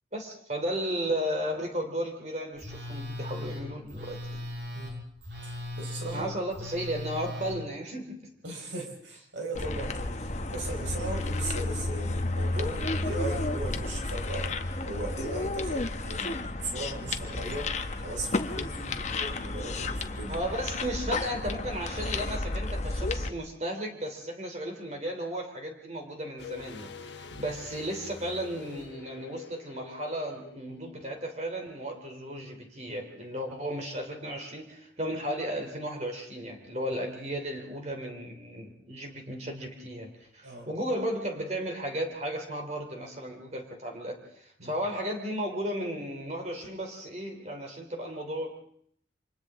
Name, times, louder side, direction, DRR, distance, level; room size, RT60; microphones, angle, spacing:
voice 1, 0.1-4.5 6.1-8.3 20.3-48.5, equal, 35° right, 3 dB, 3.1 m, -34 dB
Telephone, 2.6-7.5, left 1 dB, 65° right, 6.4 m, -38 dB
voice 2, 5.4-6.3 8.4-14.5 14.8-20.4 27.3-27.5 40.4-40.7 44.6-44.8, right 2 dB, 80° right, 2 dB, 4.5 m, -38 dB
sound 1, 9.5-23.3, left 2 dB, 40° left, 1.0 m, -32 dB
sound 2, 26.4-31.2 31.5-31.6, left 5 dB, 75° left, 1.2 m, -46 dB
29.0 x 25.5 x 3.7 m, 0.65 s
head